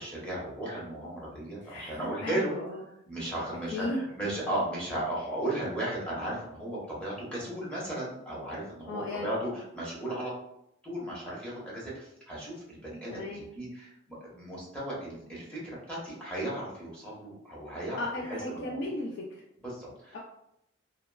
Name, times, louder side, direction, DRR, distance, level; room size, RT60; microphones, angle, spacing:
voice 1, 0.0-2.5 3.1-10.3 10.8-18.4 18.6-18.8 19.6-20.2, right 1 dB, 5° left, -7 dB, 0.9 m, -35 dB
voice 2, 1.6-2.8 3.7-4.0 8.9-9.3 13.1-13.4 18.0-19.4 20.1-20.2, left 2 dB, 60° left, -2 dB, 0.4 m, -35 dB
2.8 x 2.2 x 2.3 m, 0.79 s
head